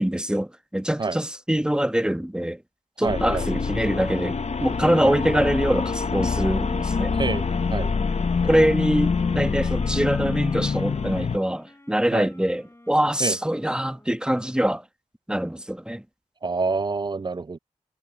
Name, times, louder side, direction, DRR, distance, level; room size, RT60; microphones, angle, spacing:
voice 1, 0.0-2.6 3.0-7.1 8.4-14.8 15.3-16.0, right 1 dB, 5° right, 1.3 m, -24 dB
voice 2, 3.0-3.5 5.0-5.2 7.2-7.4 7.7-7.9 12.1-12.3 13.2-13.4 16.4-17.6, right 4 dB, 35° right, 0.4 m, -27 dB
sound 1, 3.1-11.4, left 5 dB, 55° left, 0.9 m, -25 dB
sound 2, 6.6-14.4, left 1 dB, 20° left, 3.6 m, -50 dB
cardioid pair, 55°, 13 cm